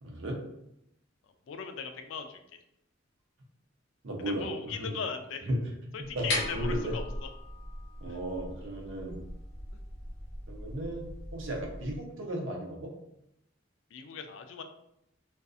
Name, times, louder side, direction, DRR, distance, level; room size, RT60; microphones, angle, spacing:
voice 1, 0.0-0.4 4.0-4.5 4.8-4.9 5.5-5.6 6.0-6.9 8.0-9.2 10.5-11.1 11.3-12.9, right 1 dB, 90° right, 0 dB, 0.7 m, -35 dB
voice 2, 1.5-2.4 4.2-5.4 5.9-7.3 8.1-8.2 13.9-14.6, left 5 dB, 80° left, 7 dB, 0.3 m, -39 dB
sound 1, 6.0-12.0, left 1 dB, 60° left, 0.7 m, -38 dB
2.5 x 2.4 x 2.4 m, 0.81 s
head